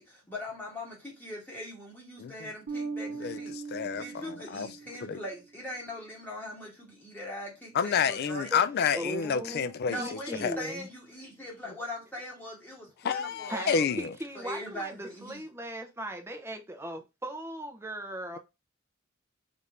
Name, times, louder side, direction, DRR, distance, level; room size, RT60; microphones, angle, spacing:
voice 1, 0.0-3.5 3.9-8.5 9.9-13.9 14.3-15.4, left 1 dB, 10° left, 1.2 m, -41 dB
voice 2, 2.2-2.5 3.2-4.7 5.0-5.2 7.7-10.6 13.0-14.1, left 6 dB, 50° left, 0.3 m, -29 dB
Bass guitar, 2.7-5.3, right 4 dB, 60° right, 0.7 m, -39 dB
voice 3, 8.9-10.9 13.5-18.4, right 1 dB, 10° right, 0.6 m, -38 dB
3.4 x 2.5 x 4.1 m
head